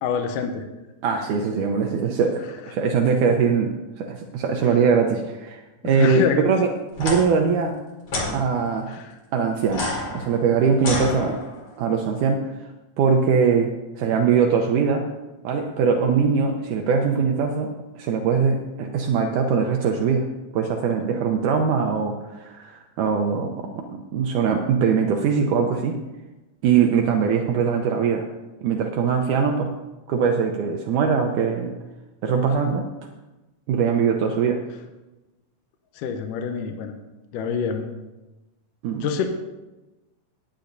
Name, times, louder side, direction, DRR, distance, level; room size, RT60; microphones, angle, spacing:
voice 1, 0.0-0.7 5.9-6.5 8.9-9.2 36.0-36.9 37.3-37.9 39.0-39.3, left 6 dB, 80° left, 5 dB, 2.3 m, -26 dB
voice 2, 1.0-6.7 7.0-7.8 8.3-8.9 9.3-11.4 11.8-12.5 13.0-13.7 14.0-15.1 15.4-20.3 20.5-26.0 26.6-28.3 28.6-29.7 30.1-31.7 32.2-32.9 33.7-34.6 38.8-39.1, right 6 dB, 75° right, 3 dB, 2.1 m, -22 dB
sound 1, 6.9-7.2 8.1-8.3 9.7-11.7, left 2 dB, 40° left, 2.9 m, -29 dB
18.5 x 10.0 x 2.7 m, 1.1 s
omnidirectional pair, 3.9 m